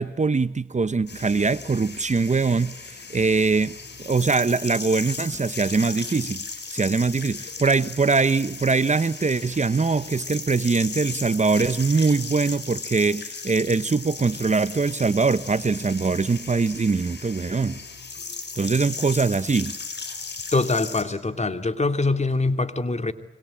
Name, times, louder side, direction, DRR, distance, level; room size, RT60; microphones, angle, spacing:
voice 1, 0.0-6.4 6.7-17.8 18.5-19.7, right 4 dB, 35° right, 1.0 m, -22 dB
sound 1, 1.1-21.0, left 4 dB, 60° left, 5.9 m, -36 dB
voice 2, 20.5-23.1, left 3 dB, 35° left, 2.8 m, -23 dB
27.0 x 25.0 x 8.8 m
supercardioid pair, 45°, 20 cm